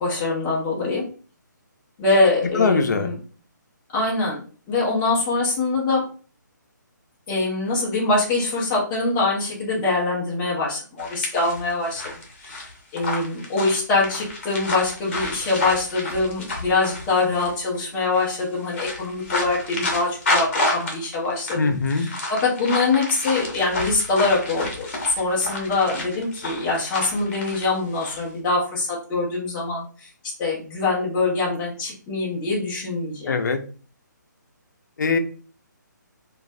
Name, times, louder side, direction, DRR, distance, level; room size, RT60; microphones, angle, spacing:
voice 1, 0.0-1.0 2.0-3.2 3.9-4.4 4.7-6.0 7.3-12.0 12.4-12.6 12.9-24.9 25.2-30.1 30.4-33.4, left 3 dB, 10° left, -6 dB, 0.5 m, -24 dB
voice 2, 2.5-3.1 21.6-22.1 33.3-33.6 35.0-35.2, left 4 dB, 65° left, 6 dB, 0.5 m, -21 dB
sound 1, 11.0-17.5 18.0-18.3 18.6-28.2, left 2 dB, 40° left, 0.9 m, -30 dB
3.0 x 2.3 x 2.5 m, 0.40 s
hypercardioid pair, 170°, 10 cm